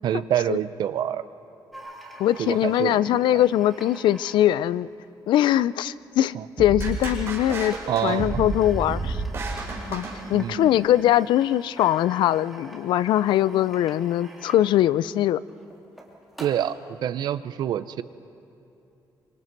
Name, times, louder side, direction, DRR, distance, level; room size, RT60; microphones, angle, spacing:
voice 1, 0.0-1.3 2.4-3.4 6.3-6.5 7.9-8.5 10.3-10.7 16.4-16.8 17.0-18.0, right 10 dB, 65° right, 13 dB, 0.7 m, -27 dB
sound 1, 1.7-5.4 6.2-6.3 6.6-6.7 6.9-16.8, right 1 dB, ahead, 2.6 m, -46 dB
voice 2, 2.2-4.9 5.3-7.7 8.0-9.2 9.9-15.4, left 12 dB, 90° left, 18 dB, 0.4 m, -22 dB
sound 2, 6.6-10.7, right 3 dB, 35° right, 5.0 m, -31 dB
26.5 x 25.0 x 4.6 m, 2.8 s
cardioid pair, 155°, 8 cm